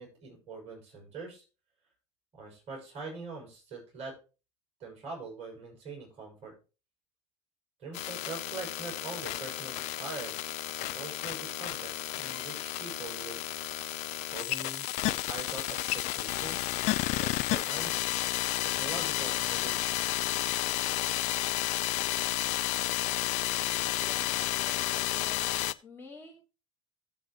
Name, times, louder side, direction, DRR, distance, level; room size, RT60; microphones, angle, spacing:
voice 1, 0.0-1.4 2.4-4.2 4.8-6.5 7.8-13.4 14.3-16.6 17.2-18.1 18.6-20.2, right 3 dB, 45° right, 0 dB, 6.5 m, -43 dB
sound 1, 7.9-25.7, left 16 dB, 50° left, 0.4 m, -32 dB
voice 2, 23.9-25.4 25.8-26.4, left 4 dB, 15° left, -2 dB, 3.2 m, -48 dB
15.0 x 7.9 x 3.1 m, 0.33 s
figure-of-eight pair, 65°, 15 cm